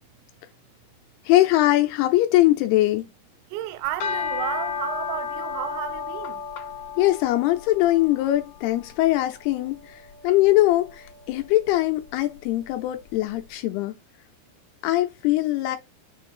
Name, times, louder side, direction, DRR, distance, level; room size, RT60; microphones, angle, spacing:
voice 1, 1.3-3.0 7.0-13.9 14.8-15.8, left 16 dB, 85° left, 2.7 m, -21 dB
voice 2, 3.5-6.4, right 13 dB, 85° right, 2.5 m, -32 dB
sound 1, 3.8-13.2, left 6 dB, 60° left, 1.7 m, -35 dB
6.7 x 2.6 x 5.4 m
omnidirectional pair, 4.6 m